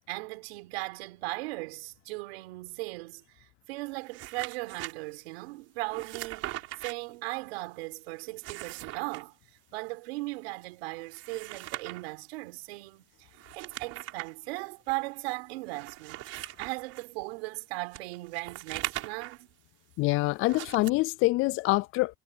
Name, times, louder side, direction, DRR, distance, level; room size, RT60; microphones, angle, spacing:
voice 1, 0.1-9.3 9.7-19.5, right 24 dB, 85° right, 6.0 m, -38 dB
sound 1, 3.9-4.9 5.9-6.9 8.3-9.2 11.0-12.1 13.3-14.3 14.9-15.0 15.7-17.1 17.9-19.4 20.4-20.9, right 16 dB, 55° right, 4.1 m, -40 dB
voice 2, 20.0-22.2, left 21 dB, 45° left, 0.4 m, -25 dB
cardioid pair, 140°, 30 cm